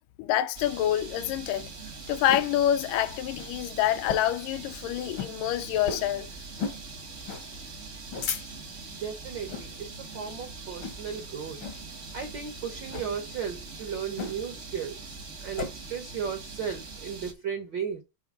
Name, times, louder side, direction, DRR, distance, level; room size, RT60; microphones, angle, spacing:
voice 1, 0.2-1.7 2.1-6.3, left 12 dB, 80° left, 2.1 m, -27 dB
sound 1, 0.5-17.3, right 4 dB, 60° right, 0.7 m, -43 dB
sound 2, 1.3-2.6 3.0-3.1 3.3-3.5 4.0-4.5 4.8-4.9 5.1-5.3 5.8-6.1 6.6-6.8 7.3-7.5 7.9-8.8 9.4-9.7 10.1-10.4 10.8-11.2 11.6-11.8 12.8-13.1 14.2-14.6 14.9-15.7, left 5 dB, 65° left, 1.3 m, -35 dB
voice 2, 8.9-11.6 12.1-18.0, right 7 dB, 80° right, 1.0 m, -35 dB
7.9 x 3.3 x 5.1 m
omnidirectional pair, 3.8 m